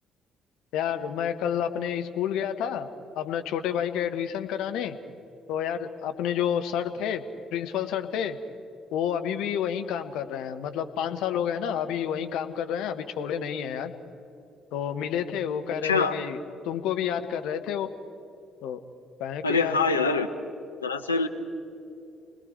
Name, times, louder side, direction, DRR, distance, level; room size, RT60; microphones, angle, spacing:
voice 1, 0.7-2.9 3.2-5.0 5.5-7.2 7.5-8.4 8.9-13.9 14.7-16.4 16.6-17.9 18.6-18.8 19.2-19.8, left 9 dB, 65° left, 7 dB, 1.1 m, -29 dB
voice 2, 15.8-16.2 19.4-20.3 20.8-21.3, left 4 dB, 85° left, 5 dB, 0.8 m, -24 dB
30.0 x 20.5 x 4.6 m, 2.8 s
figure-of-eight pair, 45°, 0 cm